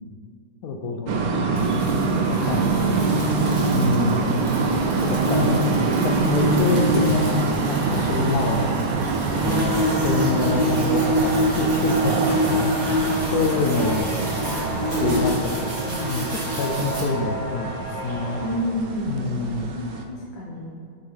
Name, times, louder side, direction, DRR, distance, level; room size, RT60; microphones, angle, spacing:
voice 1, 0.6-1.2 2.3-2.7 3.7-4.4 5.1-5.7 6.0-8.8 9.3-13.0 13.3-14.1 15.0-18.4 19.1-19.8, left 3 dB, 70° left, 3 dB, 1.0 m, -26 dB
sound 1, 1.1-20.0, right 4 dB, 75° right, 1.2 m, -25 dB
sound 2, 1.6-17.0, equal, 45° right, 1.4 m, -26 dB
sound 3, 7.9-18.6, right 1 dB, 30° left, 1.3 m, -36 dB
voice 2, 12.8-14.0 18.4-19.3 19.8-20.7, equal, 90° left, -4 dB, 1.8 m, -32 dB
6.7 x 4.5 x 3.3 m, 2.4 s
omnidirectional pair, 2.0 m